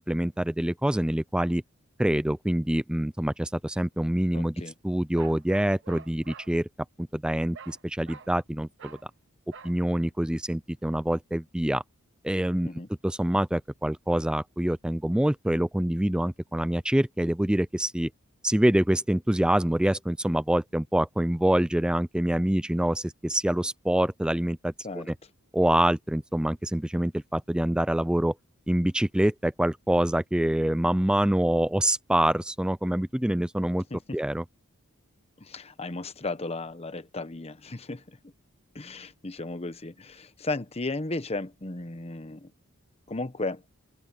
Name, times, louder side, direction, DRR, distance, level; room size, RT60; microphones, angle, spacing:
voice 1, 0.0-1.6 2.0-4.6 4.8-6.7 7.0-9.0 9.6-11.8 12.2-12.7 13.0-18.1 18.4-25.1 25.5-28.3 28.7-33.8 34.1-34.4, right 1 dB, 5° right, 0.3 m, -25 dB
voice 2, 4.3-4.7 12.6-12.9 24.8-25.1 33.9-34.2 35.4-38.3 38.7-42.5 43.1-43.6, left 2 dB, 30° left, 1.1 m, -35 dB
Bark, 5.2-6.5 7.5-8.3 8.8-9.1 9.5-9.8, right 6 dB, 60° right, 1.0 m, -46 dB
open air
head